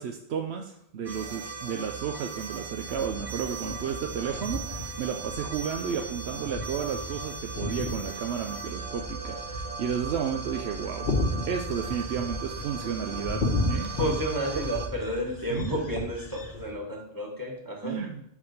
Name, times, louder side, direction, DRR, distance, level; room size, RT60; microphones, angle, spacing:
voice 1, 0.0-11.1 11.5-13.9 14.6-14.7 15.5-15.9 17.8-18.2, right 7 dB, 80° right, 4 dB, 0.9 m, -32 dB
sound 1, 1.0-14.9, right 4 dB, 40° right, 0.7 m, -38 dB
sound 2, 2.8-16.7, left 2 dB, 60° left, 1.3 m, -35 dB
voice 2, 14.0-18.0, equal, 20° right, 0 dB, 1.4 m, -31 dB
5.4 x 5.0 x 6.4 m, 0.75 s
omnidirectional pair, 1.1 m